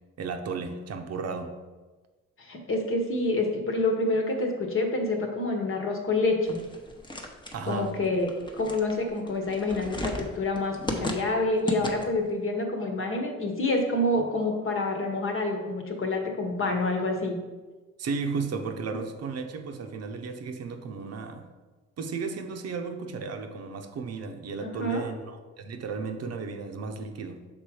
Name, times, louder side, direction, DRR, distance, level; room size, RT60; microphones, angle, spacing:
voice 1, 0.2-1.6 7.5-7.9 18.0-21.5 22.0-27.5, right 4 dB, 55° right, 6 dB, 0.7 m, -34 dB
voice 2, 2.4-6.6 7.7-17.4 24.6-25.0, left 2 dB, 45° left, 3 dB, 1.2 m, -27 dB
sound 1, 6.5-12.3, left 1 dB, 15° left, 0.9 m, -36 dB
6.2 x 3.7 x 4.8 m, 1.3 s
cardioid pair, 90°, 30 cm